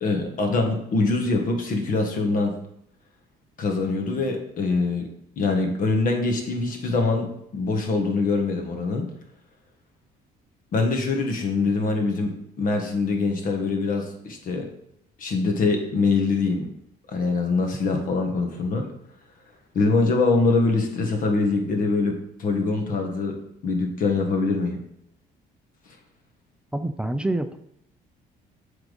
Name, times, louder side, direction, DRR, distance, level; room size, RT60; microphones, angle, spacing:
voice 1, 0.0-2.5 3.6-5.1 5.4-9.1 10.7-14.7 15.2-16.7 17.1-18.9 19.7-24.8, left 3 dB, 55° left, 3 dB, 1.4 m, -24 dB
voice 2, 26.7-27.6, right 1 dB, 5° right, 9 dB, 0.4 m, -27 dB
7.6 x 3.6 x 5.0 m, 0.75 s
cardioid pair, 110°, 17 cm